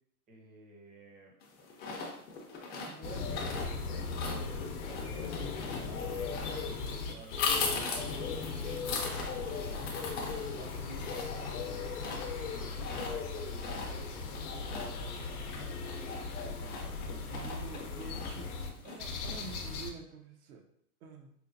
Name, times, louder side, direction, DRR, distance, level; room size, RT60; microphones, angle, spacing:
voice 1, 0.3-1.3 2.8-10.1 10.5-12.2 12.5-17.7, right 1 dB, 20° right, 0 dB, 0.6 m, -52 dB
sound 1, 1.4-19.4, left 4 dB, 20° left, 0.5 m, -40 dB
sound 2, 3.0-18.7 19.0-19.9, left 4 dB, 75° left, 0.7 m, -38 dB
voice 2, 17.3-20.6 21.0-21.3, right 5 dB, 65° right, 3 dB, 0.7 m, -47 dB
4.3 x 2.1 x 2.5 m, 0.71 s
hypercardioid pair, 110°, 46 cm